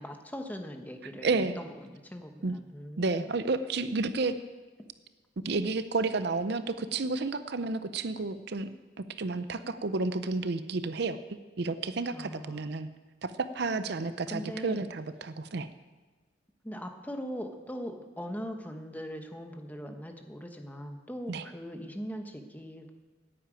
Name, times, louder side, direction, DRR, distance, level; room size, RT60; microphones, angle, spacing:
voice 1, 0.0-3.3 12.1-12.9 14.3-14.8 16.6-22.9, equal, 10° left, 5 dB, 1.0 m, -40 dB
voice 2, 1.2-1.6 2.4-2.5 3.0-4.4 5.4-8.7 9.0-12.9 13.2-15.7 21.3-21.4, right 3 dB, 60° right, 12 dB, 0.6 m, -31 dB
9.8 x 9.1 x 8.9 m, 1.3 s
head